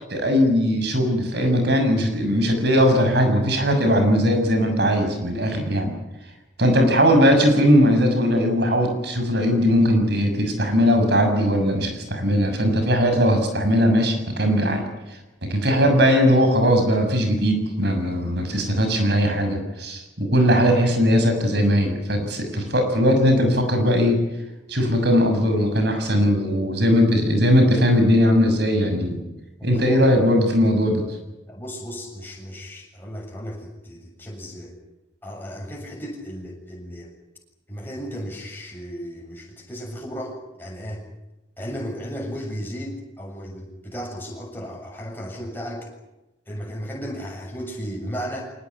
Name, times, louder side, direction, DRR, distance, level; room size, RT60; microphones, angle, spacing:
voice 1, 0.1-5.9 6.6-14.8 15.5-24.2 24.7-29.2 29.6-31.0, equal, 60° right, 6 dB, 6.6 m, -19 dB
voice 2, 29.6-30.0 31.5-34.7 35.2-37.1 37.7-41.0 41.6-45.9 46.5-48.5, equal, 10° left, -1 dB, 7.2 m, -34 dB
24.5 x 19.5 x 9.8 m, 1.0 s
head